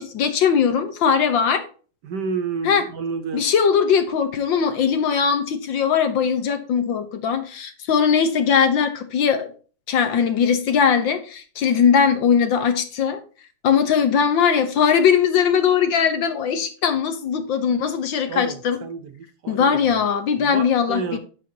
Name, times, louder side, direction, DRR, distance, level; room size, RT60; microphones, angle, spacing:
voice 1, 0.0-1.6 2.6-2.9 3.3-9.5 9.9-13.2 13.6-18.8 19.5-21.2, left 7 dB, 65° left, 8 dB, 1.7 m, -20 dB
voice 2, 2.0-3.4 18.3-19.8 20.4-21.2, right 5 dB, 60° right, 8 dB, 1.4 m, -30 dB
9.9 x 7.0 x 2.8 m, 0.38 s
omnidirectional pair, 2.3 m